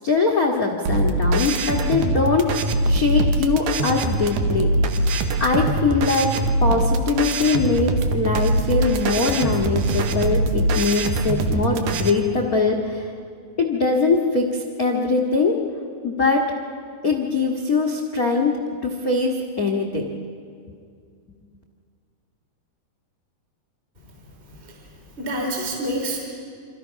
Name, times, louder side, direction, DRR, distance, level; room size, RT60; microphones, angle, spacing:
voice 1, 0.0-5.0 5.4-13.1 13.6-15.6 16.0-16.5 17.0-18.6 18.8-20.1, left 4 dB, 70° left, 2 dB, 0.8 m, -22 dB
sound 1, 0.9-12.1, right 2 dB, 65° right, 2.4 m, -22 dB
voice 2, 24.5-26.2, right 1 dB, 15° right, -1 dB, 3.5 m, -28 dB
27.0 x 26.5 x 5.8 m, 2.3 s
omnidirectional pair, 4.4 m